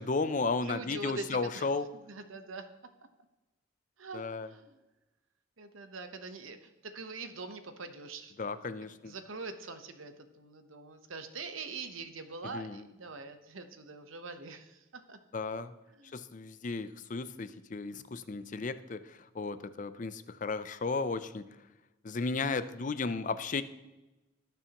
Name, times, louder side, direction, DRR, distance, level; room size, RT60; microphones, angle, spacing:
voice 1, 0.0-1.9 4.1-4.5 8.4-9.1 12.4-12.8 15.3-15.7 16.1-21.4 22.0-23.6, left 4 dB, 40° left, 13 dB, 0.5 m, -34 dB
voice 2, 0.6-1.7 2.1-2.7 4.0-4.8 5.6-8.3 9.1-15.2 15.9-16.2, right 3 dB, 80° right, 8 dB, 1.0 m, -43 dB
18.0 x 6.9 x 3.0 m, 1.1 s
head